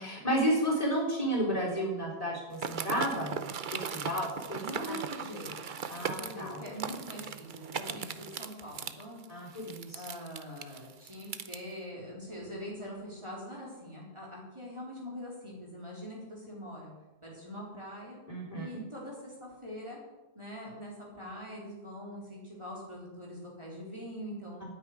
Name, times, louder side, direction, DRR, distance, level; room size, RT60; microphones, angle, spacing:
voice 1, 0.0-3.4 3.7-4.6 5.9-6.6 9.3-10.0 18.3-18.7, equal, 30° left, -4 dB, 4.3 m, -32 dB
sound 1, 2.5-11.6, right 6 dB, 50° right, 0.8 m, -38 dB
voice 2, 4.6-9.2 9.9-16.9 17.2-18.2 18.5-20.0 20.4-24.6, equal, 25° right, -4 dB, 3.9 m, -43 dB
9.6 x 8.6 x 9.7 m, 1.1 s
omnidirectional pair, 1.1 m